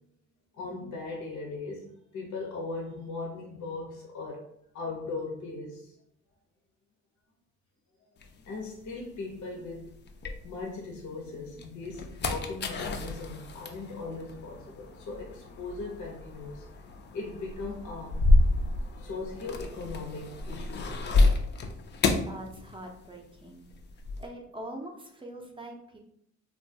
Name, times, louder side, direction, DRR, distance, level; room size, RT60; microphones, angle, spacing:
voice 1, 0.5-1.9 2.1-4.5 4.7-5.9 8.4-9.9 10.4-16.7 17.1-18.2 19.0-21.1, left 3 dB, 70° left, -1 dB, 0.7 m, -38 dB
sound 1, 8.2-11.0 11.4-23.2 23.4-24.3, left 2 dB, 35° left, 0.4 m, -29 dB
voice 2, 22.2-23.7 24.2-26.0, right 1 dB, 15° right, 1 dB, 0.5 m, -43 dB
2.9 x 2.2 x 2.7 m, 0.72 s
cardioid pair, 90°, 30 cm